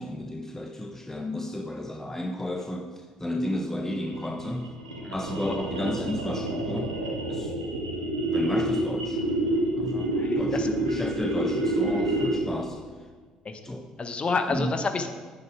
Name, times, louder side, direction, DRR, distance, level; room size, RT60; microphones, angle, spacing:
voice 1, 0.0-4.7 5.1-6.9 7.3-7.6 8.3-9.2 9.8-12.8 13.6-13.8 14.5-14.7, left 1 dB, 15° left, 4 dB, 1.0 m, -32 dB
sound 1, 3.9-12.6, right 1 dB, 85° right, 1.7 m, -28 dB
voice 2, 9.9-10.7 13.4-13.6 14.0-15.1, left 4 dB, 35° left, 7 dB, 1.3 m, -29 dB
9.7 x 9.7 x 4.8 m, 1.5 s
figure-of-eight pair, 50°, 3 cm